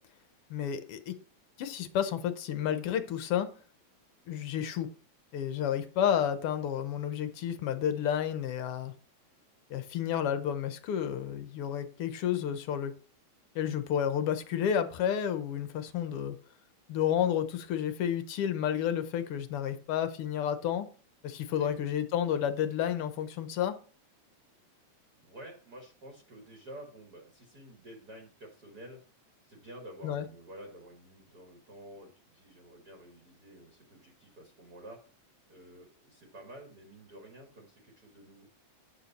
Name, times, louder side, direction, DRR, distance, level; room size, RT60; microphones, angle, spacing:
voice 1, 0.5-1.2 1.6-3.5 4.3-4.9 5.3-8.9 9.7-12.9 13.5-16.4 16.9-20.9 21.2-23.8 30.0-30.3, left 9 dB, 70° left, 10 dB, 1.4 m, -31 dB
voice 2, 25.2-29.0 29.5-35.0 35.5-38.5, right 1 dB, 40° right, 0 dB, 1.8 m, -50 dB
9.8 x 6.4 x 4.1 m, 0.39 s
omnidirectional pair, 3.3 m